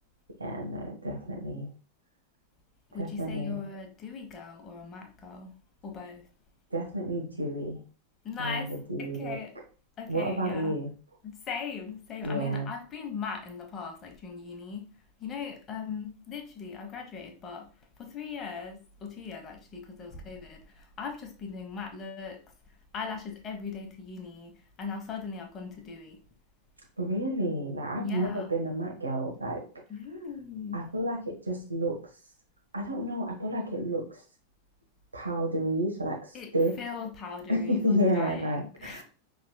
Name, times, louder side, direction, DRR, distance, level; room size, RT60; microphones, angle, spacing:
voice 1, 0.4-1.7 3.0-3.6 6.7-7.8 8.4-8.6 8.9-9.4 10.1-10.9 12.2-12.7 27.0-29.6 30.7-32.0 32.7-34.2 35.1-36.7 37.5-39.0, right 1 dB, 80° right, 1.2 m, -30 dB
voice 2, 2.9-5.5 5.8-6.3 8.2-9.6 10.0-10.8 11.2-26.2 28.0-28.5 29.9-30.9 36.3-39.0, left 5 dB, 30° left, 1.0 m, -39 dB
5.6 x 3.4 x 2.2 m
figure-of-eight pair, 90°, 0 cm